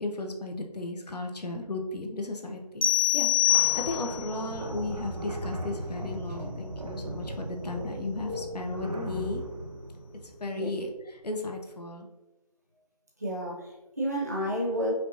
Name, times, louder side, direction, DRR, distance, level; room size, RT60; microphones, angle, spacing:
voice 1, 0.0-2.9 3.1-9.4 10.4-12.1, left 2 dB, 90° left, 3 dB, 0.8 m, -35 dB
sound 1, 2.8-4.3, left 13 dB, 60° left, 0.5 m, -24 dB
sound 2, 3.5-10.9, right 1 dB, 65° right, 0.8 m, -37 dB
voice 2, 13.2-14.9, equal, 25° right, -5 dB, 0.6 m, -30 dB
5.1 x 2.9 x 2.7 m, 1.0 s
figure-of-eight pair, 175°, 20 cm